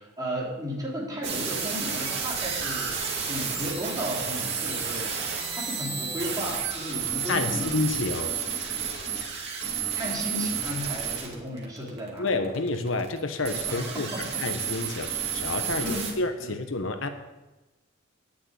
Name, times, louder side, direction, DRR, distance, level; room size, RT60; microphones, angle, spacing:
voice 1, 0.0-3.0 3.3-7.8 9.9-12.4 13.7-14.4 15.8-16.5, equal, 20° right, -4 dB, 3.7 m, -34 dB
sound 1, 1.2-16.1, right 7 dB, 55° right, 2.6 m, -31 dB
voice 2, 7.3-8.3 12.2-14.1 14.4-17.1, left 3 dB, 70° left, 8 dB, 1.0 m, -29 dB
10.5 x 7.2 x 9.2 m, 1.1 s
head